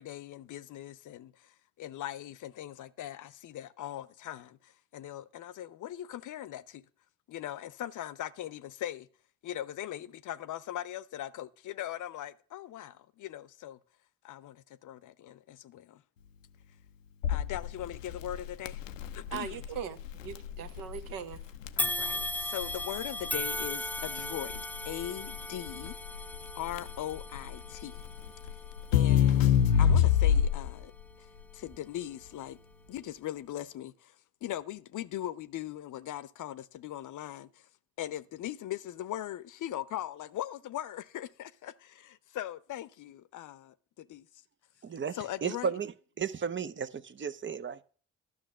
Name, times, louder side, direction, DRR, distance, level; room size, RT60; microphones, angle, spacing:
voice 1, 0.0-6.8 7.3-9.1 9.4-13.8 14.2-16.0 17.3-18.8 19.2-19.6 21.8-26.0 26.6-28.0 28.9-29.5 29.8-30.9 31.2-31.3 31.5-32.6 32.9-37.7 38.0-44.3 45.1-45.7, left 12 dB, 55° left, 0.8 m, -40 dB
Crackle, 17.2-30.8, left 9 dB, 85° left, 0.6 m, -28 dB
voice 2, 19.3-21.4, right 8 dB, 60° right, 1.1 m, -40 dB
sound 1, 21.8-31.1 31.6-31.8 32.7-32.8, left 1 dB, 5° left, 0.4 m, -38 dB
voice 3, 44.8-45.9 46.2-47.8, right 7 dB, 30° right, 0.7 m, -34 dB
12.0 x 6.2 x 6.1 m
figure-of-eight pair, 40°, 38 cm